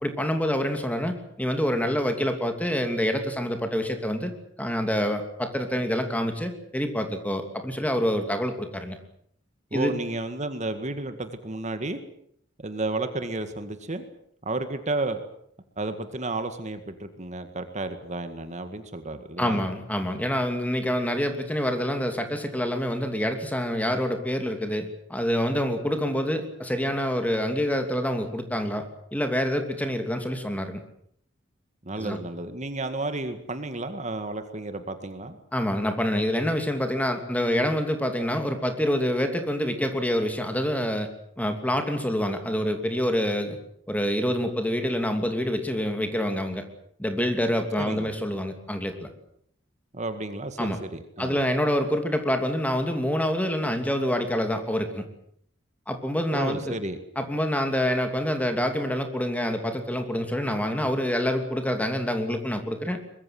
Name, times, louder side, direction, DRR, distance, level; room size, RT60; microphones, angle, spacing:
voice 1, 0.0-4.3 4.6-9.0 9.7-9.9 19.4-30.8 32.0-32.2 35.5-41.1 41.4-43.6 43.9-46.6 47.0-49.1 50.6-50.8 51.2-55.0 55.9-56.7 57.2-63.0, equal, 10° left, 6 dB, 2.8 m, -26 dB
voice 2, 9.7-12.0 12.6-14.1 14.4-15.2 15.8-19.6 31.8-35.4 47.8-48.1 49.9-51.4 56.3-57.0, right 2 dB, 35° right, 9 dB, 1.9 m, -32 dB
23.5 x 21.5 x 7.8 m, 0.67 s
head